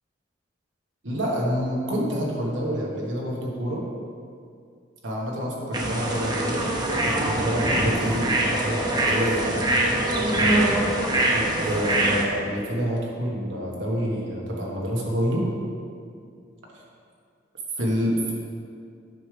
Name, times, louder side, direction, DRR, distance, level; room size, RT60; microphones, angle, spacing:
voice 1, 1.0-3.9 5.0-6.7 7.0-9.9 11.3-15.5 16.7-16.8 17.8-18.3, equal, 80° right, -3 dB, 1.5 m, -27 dB
sound 1, 5.7-12.2, right 1 dB, 20° right, 0.8 m, -23 dB
8.4 x 6.2 x 3.4 m, 2.3 s
head